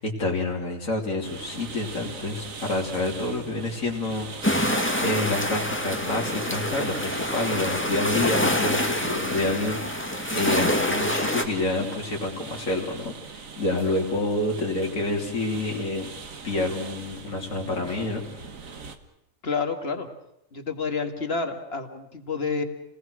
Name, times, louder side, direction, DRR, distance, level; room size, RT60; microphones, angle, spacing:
voice 1, 0.0-16.1 16.4-18.2, left 2 dB, 80° left, -2 dB, 3.4 m, -28 dB
sound 1, 1.2-19.0, right 5 dB, 80° right, 2.0 m, -42 dB
sound 2, 4.4-11.5, left 1 dB, 10° left, 2.0 m, -26 dB
voice 2, 19.4-20.1 20.5-22.6, left 4 dB, 50° left, 6 dB, 2.1 m, -29 dB
29.5 x 19.0 x 6.4 m, 0.82 s
omnidirectional pair, 1.4 m